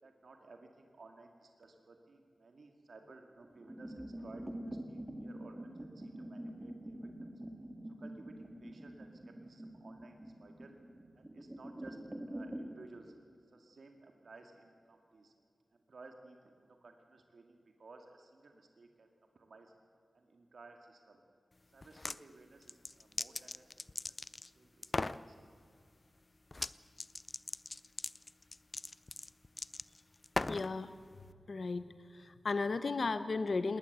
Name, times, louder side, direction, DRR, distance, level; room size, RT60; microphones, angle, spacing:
voice 1, 0.0-7.3 7.9-10.8 11.2-12.0 12.2-13.1 13.5-15.3 15.7-19.1 19.3-19.7 20.1-21.2 21.7-23.7 24.5-25.5, right 3 dB, 70° right, 4 dB, 2.2 m, -57 dB
sound 1, 3.4-12.7, right 1 dB, 15° right, 2.0 m, -46 dB
sound 2, 21.8-22.2 22.6-24.5 24.8-25.2 26.5-26.7 27.0-30.7, left 2 dB, 30° left, 0.5 m, -39 dB
voice 2, 30.5-30.9 31.5-31.9 32.1-33.8, left 3 dB, 55° left, 11 dB, 1.0 m, -34 dB
20.0 x 19.0 x 8.1 m, 2.3 s
wide cardioid pair, 115°, 0 cm